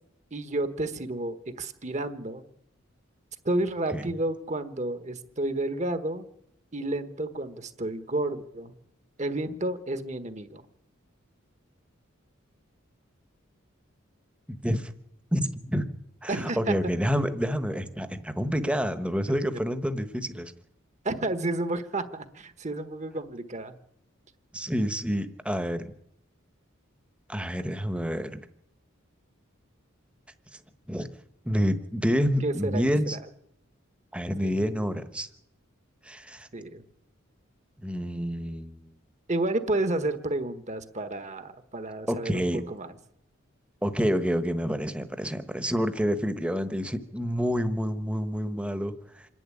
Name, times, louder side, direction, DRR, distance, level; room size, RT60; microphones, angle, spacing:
voice 1, 0.3-2.4 3.4-6.3 6.7-8.7 9.2-10.6 16.3-16.8 21.0-23.7 32.4-32.8 33.1-33.2 34.4-34.9 36.5-36.8 39.3-42.9, right 2 dB, 35° right, 10 dB, 1.4 m, -31 dB
voice 2, 14.5-14.9 15.3-15.9 16.2-20.5 24.5-25.9 27.3-28.4 30.9-31.1 31.4-33.2 34.1-35.3 36.0-36.5 37.8-38.8 42.1-42.6 43.8-49.3, equal, 5° right, 10 dB, 1.2 m, -28 dB
26.5 x 11.0 x 9.9 m, 0.79 s
head